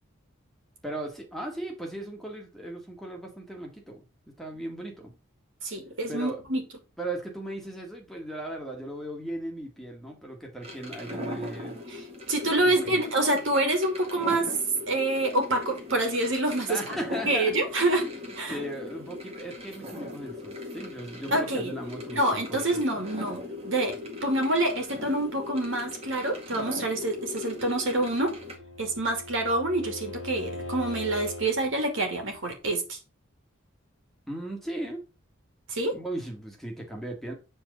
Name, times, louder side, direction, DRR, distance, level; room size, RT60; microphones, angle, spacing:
voice 1, 0.8-5.1 6.1-6.4 7.0-11.8 12.6-13.1 16.7-17.6 18.0-22.8 34.3-35.0 35.9-37.3, right 1 dB, ahead, 1.7 m, -37 dB
voice 2, 5.6-6.6 12.3-14.5 14.9-16.8 17.3-18.1 18.4-18.6 21.3-21.7 22.1-24.0 24.2-28.3 28.8-33.0 35.7-35.9, right 2 dB, 65° right, 2.6 m, -27 dB
sound 1, 10.6-28.6, left 2 dB, 30° right, 1.8 m, -40 dB
Bowed string instrument, 27.9-31.6, left 1 dB, 65° left, 2.0 m, -40 dB
7.9 x 4.5 x 5.1 m
head